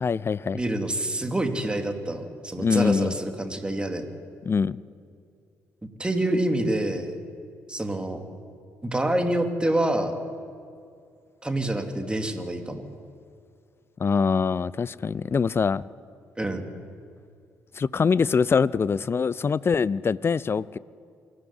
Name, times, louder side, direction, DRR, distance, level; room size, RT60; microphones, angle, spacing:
voice 1, 0.0-0.6 2.6-3.1 4.4-4.8 14.0-15.8 17.8-20.8, left 5 dB, 30° left, 21 dB, 0.6 m, -23 dB
voice 2, 0.5-4.1 6.0-7.1 7.7-8.2 8.8-10.1 11.4-12.8 16.4-16.6, right 1 dB, 15° right, 5 dB, 2.9 m, -27 dB
23.5 x 15.5 x 9.9 m, 2.3 s
figure-of-eight pair, 45°, 8 cm